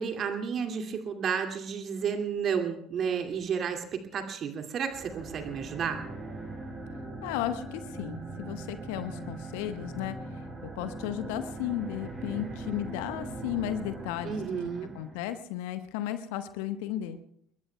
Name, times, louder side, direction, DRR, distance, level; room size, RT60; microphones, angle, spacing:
voice 1, 0.0-6.0 14.2-14.9, right 7 dB, 40° right, 5 dB, 2.4 m, -32 dB
sound 1, 4.9-15.3, right 2 dB, 25° right, 5.4 m, -41 dB
voice 2, 7.2-10.2 10.6-14.4 14.9-17.2, left 12 dB, 65° left, 10 dB, 1.1 m, -34 dB
29.0 x 21.0 x 2.3 m, 0.72 s
figure-of-eight pair, 65°, 0 cm